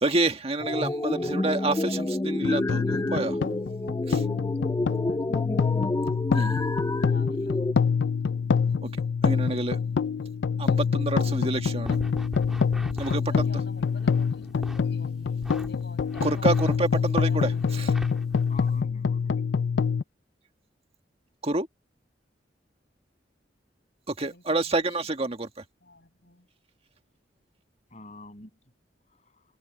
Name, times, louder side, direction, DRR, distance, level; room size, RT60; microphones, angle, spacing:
voice 1, 0.0-3.3 4.1-4.2 6.3-6.6 8.8-8.9 9.2-9.8 10.6-12.0 13.0-13.2 16.2-17.5 17.8-17.9 21.4-21.7 24.2-25.5, right 2 dB, 35° right, 1.8 m, -28 dB
sound 1, 0.6-7.7, left 2 dB, 20° left, 0.4 m, -29 dB
sound 2, 2.4-20.0, left 5 dB, 85° left, 0.4 m, -26 dB
voice 2, 4.2-6.1 7.1-8.2 9.4-9.5 13.1-17.8 24.2-25.4 25.8-26.5, left 2 dB, 70° left, 8.0 m, -50 dB
sound 3, 11.8-14.8 15.4-18.7, equal, 5° right, 2.3 m, -42 dB
voice 3, 18.5-19.5 27.9-28.6 29.1-29.4, left 2 dB, 40° left, 7.4 m, -47 dB
head